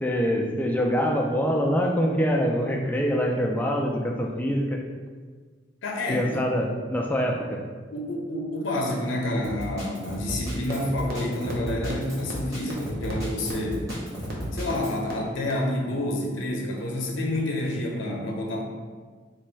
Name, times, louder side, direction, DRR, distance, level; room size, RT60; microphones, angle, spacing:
voice 1, 0.0-4.8 6.1-7.6, equal, 10° left, 0 dB, 0.3 m, -25 dB
voice 2, 5.8-6.4 7.9-13.9 14.5-18.6, left 1 dB, 75° left, 0 dB, 0.6 m, -29 dB
Drum kit, 9.4-15.0, equal, 15° right, 0.9 m, -34 dB
sound 1, 10.7-10.8 11.1-11.2 11.5-11.6 11.9-12.0 12.3-12.4 12.7-12.8 13.1-13.2 13.5-13.6 13.9-14.0 14.3-14.4 14.7-14.8 15.1-15.2 15.5-15.6, right 2 dB, 50° right, 0.7 m, -36 dB
3.0 x 2.6 x 4.4 m, 1.5 s
head